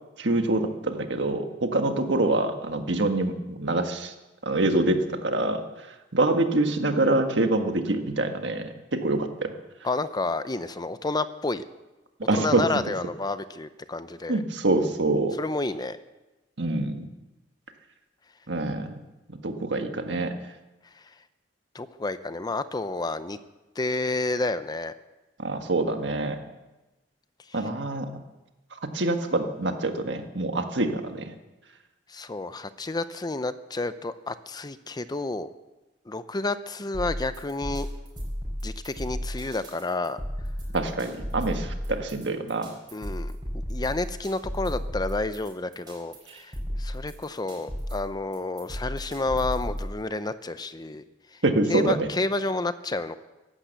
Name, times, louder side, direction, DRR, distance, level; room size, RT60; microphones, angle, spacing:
voice 1, 0.2-4.1 4.4-9.5 12.2-12.6 14.3-15.4 16.6-17.1 18.5-19.0 19.3-20.3 25.4-26.4 27.5-28.1 28.8-31.3 40.7-42.7 51.4-52.1, right 2 dB, 70° right, 6 dB, 1.6 m, -26 dB
voice 2, 9.8-11.6 12.3-14.4 15.4-16.0 21.7-23.4 23.8-24.9 27.5-27.6 32.1-35.5 36.1-37.9 38.6-40.2 42.9-43.3 43.7-51.0 51.3-51.4 51.7-53.1, left 2 dB, 20° left, 12 dB, 0.6 m, -30 dB
sound 1, 36.9-49.9, equal, 25° right, 5.7 m, -34 dB
15.0 x 12.0 x 8.1 m, 1.1 s
head